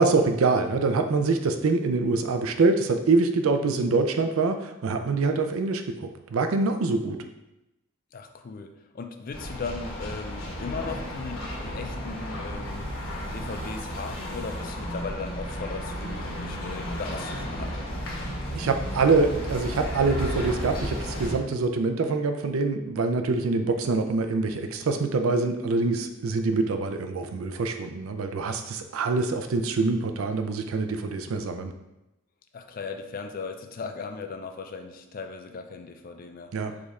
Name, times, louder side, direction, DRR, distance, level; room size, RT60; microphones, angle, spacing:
voice 1, 0.0-7.2 18.5-31.7 36.5-36.7, right 3 dB, 80° right, 7 dB, 0.4 m, -25 dB
voice 2, 8.1-12.9 13.3-17.9 32.5-36.5, left 4 dB, 40° left, 6 dB, 0.4 m, -37 dB
sound 1, 9.3-21.3, equal, 70° left, 1.2 m, -33 dB
5.0 x 2.4 x 4.1 m, 0.93 s
head